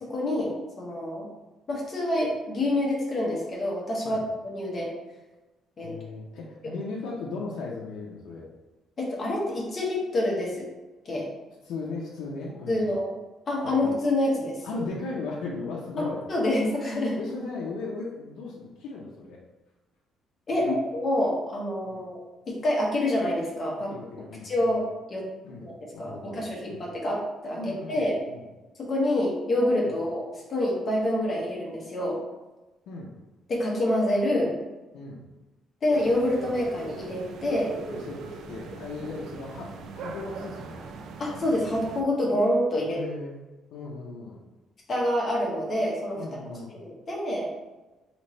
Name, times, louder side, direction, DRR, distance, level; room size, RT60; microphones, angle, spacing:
voice 1, 0.0-1.3 1.7-4.9 5.8-6.0 6.6-6.7 9.0-10.7 11.0-11.3 12.7-13.1 13.5-14.6 16.0-17.2 20.5-22.2 22.5-23.9 24.4-25.2 25.6-28.2 28.8-32.2 33.5-34.6 35.8-37.8 41.2-43.0 44.9-46.2 46.7-47.5, left 1 dB, 30° left, -3 dB, 0.9 m, -27 dB
voice 2, 5.8-8.5 11.6-12.9 13.6-13.9 14.6-16.2 17.2-19.4 20.5-20.7 21.8-22.0 23.9-24.8 25.4-26.9 27.5-28.4 32.9-33.1 34.9-35.2 37.9-40.8 42.9-43.3 43.7-44.4 46.2-46.8, left 3 dB, 85° left, -4 dB, 0.6 m, -37 dB
sound 1, 35.9-42.0, right 4 dB, 55° right, 0.3 m, -40 dB
3.2 x 2.9 x 4.1 m, 1.1 s
cardioid pair, 180°, 0 cm